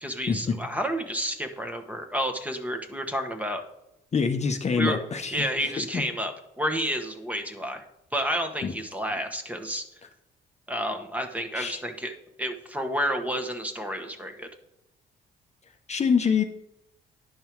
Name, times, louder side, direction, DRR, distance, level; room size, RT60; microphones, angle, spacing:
voice 1, 0.0-3.6 4.8-5.0 5.3-7.8 8.1-9.8 10.7-12.1 12.4-14.5, equal, 5° right, 5 dB, 1.1 m, -30 dB
voice 2, 4.1-6.0 8.6-8.7 11.5-11.8 15.9-16.4, left 5 dB, 35° left, 6 dB, 0.7 m, -26 dB
10.5 x 5.4 x 4.6 m, 0.87 s
cardioid pair, 90°, 20 cm